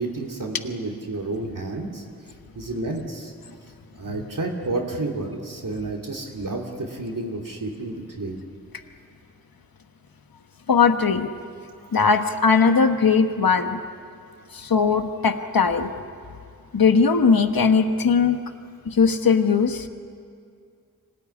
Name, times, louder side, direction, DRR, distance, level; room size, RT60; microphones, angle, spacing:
voice 1, 0.0-3.3 4.0-8.4, right 2 dB, 60° right, -1 dB, 2.8 m, -31 dB
voice 2, 10.7-11.3 11.9-13.8 14.5-15.9 16.7-18.4 18.8-19.9, left 5 dB, 70° left, 7 dB, 1.3 m, -19 dB
25.5 x 18.5 x 9.9 m, 2.4 s
wide cardioid pair, 65°, 36 cm